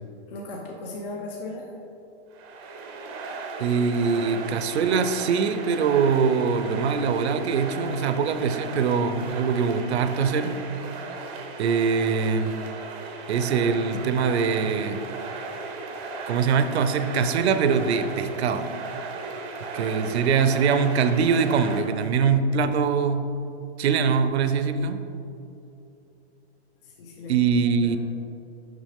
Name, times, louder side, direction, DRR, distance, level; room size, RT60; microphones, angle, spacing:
voice 1, 0.3-1.7 26.8-27.3 27.6-28.0, left 2 dB, 55° left, -1 dB, 1.0 m, -37 dB
sound 1, 2.3-21.8, right 3 dB, 25° right, 0.6 m, -36 dB
voice 2, 3.6-10.6 11.6-12.5 13.3-15.0 16.3-18.7 19.7-23.3 23.8-25.1 27.3-28.0, right 6 dB, 70° right, 10 dB, 0.6 m, -23 dB
7.4 x 6.1 x 3.5 m, 2.8 s
hypercardioid pair, 160°, 34 cm